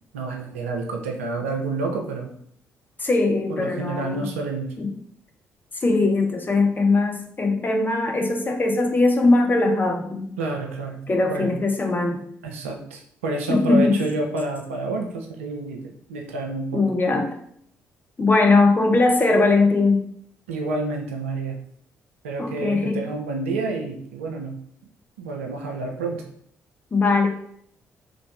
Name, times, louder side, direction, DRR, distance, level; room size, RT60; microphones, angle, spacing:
voice 1, 0.1-2.3 3.5-4.7 10.4-11.0 11.3-11.5 12.4-16.8 20.5-21.6 22.2-24.5 25.2-26.2, right 3 dB, 80° right, 2 dB, 0.4 m, -29 dB
voice 2, 3.0-4.3 4.8-4.9 5.8-10.3 11.1-12.2 13.5-14.0 16.7-17.3 18.2-20.0 22.4-23.1 26.9-27.3, left 3 dB, 25° left, 3 dB, 0.7 m, -20 dB
3.1 x 2.5 x 3.1 m, 0.65 s
figure-of-eight pair, 40°, 7 cm